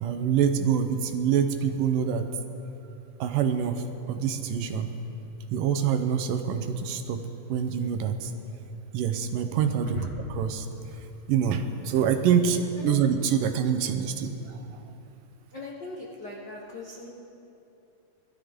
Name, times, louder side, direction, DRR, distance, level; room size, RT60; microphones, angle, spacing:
voice 1, 0.0-2.3 3.2-4.9 5.5-7.2 7.5-8.3 8.9-10.7 11.3-14.8, right 7 dB, 75° right, 7 dB, 2.3 m, -26 dB
voice 2, 15.5-17.1, left 3 dB, 90° left, -3 dB, 0.9 m, -39 dB
21.0 x 13.5 x 3.6 m, 2.8 s
omnidirectional pair, 4.1 m